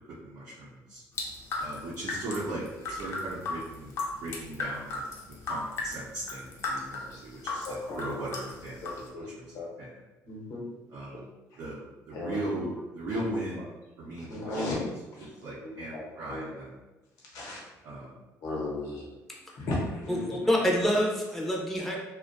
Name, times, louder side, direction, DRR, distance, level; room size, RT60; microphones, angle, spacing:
voice 1, 0.2-1.0 1.6-9.4 9.8-9.9 10.9-11.3 11.6-14.5 15.2-16.7 17.8-18.1, right 1 dB, 75° right, -8 dB, 0.6 m, -38 dB
sound 1, 1.1-6.0 6.3-9.1, left 3 dB, 55° left, 0.5 m, -35 dB
voice 2, 7.1-8.3 8.8-9.3 9.5-9.7 10.2-10.6 11.1-11.2 12.1-12.4 14.3-14.8 15.1-16.5 17.3-17.6 18.4-19.1 19.6-20.4, left 2 dB, 75° left, -3 dB, 0.8 m, -36 dB
voice 3, 20.1-22.0, equal, 5° left, -2 dB, 0.5 m, -27 dB
2.5 x 2.2 x 2.5 m, 1.1 s
cardioid pair, 115°, 6 cm